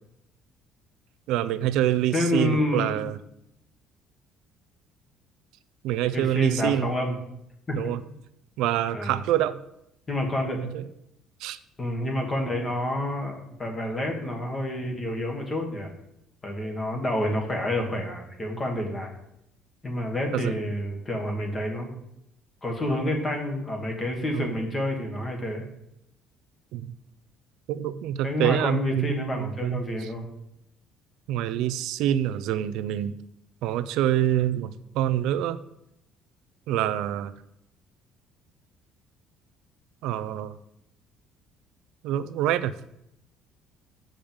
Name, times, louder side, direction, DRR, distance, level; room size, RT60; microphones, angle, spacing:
voice 1, 1.3-3.2 5.8-6.9 7.7-8.0 8.6-9.6 10.6-10.8 11.4-11.6 20.3-20.5 24.3-24.5 26.7-26.9 27.7-29.8 31.3-33.2 33.6-35.6 36.7-37.3 40.0-40.6 42.0-42.7, right 12 dB, 70° right, 14 dB, 0.5 m, -26 dB
voice 2, 2.1-3.0 6.1-7.2 7.7-7.8 8.9-9.2 10.1-10.7 11.8-15.9 16.4-19.1 19.8-21.9 22.6-25.6 28.2-30.3, left 1 dB, 20° left, 2 dB, 1.4 m, -28 dB
7.6 x 5.1 x 7.1 m, 0.82 s
cardioid pair, 175°, 0 cm